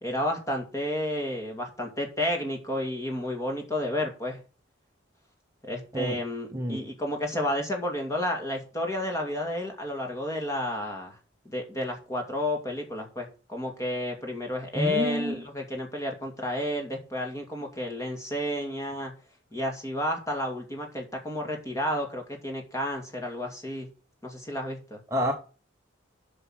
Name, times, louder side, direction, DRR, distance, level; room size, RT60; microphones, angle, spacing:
voice 1, 0.0-4.4 5.6-11.2 11.4-19.1 19.5-23.9 24.2-25.0, left 1 dB, 15° left, 2 dB, 2.3 m, -31 dB
voice 2, 6.5-6.8 14.7-15.4 25.1-25.3, equal, 15° right, 2 dB, 1.1 m, -28 dB
7.7 x 6.0 x 6.2 m, 0.35 s
head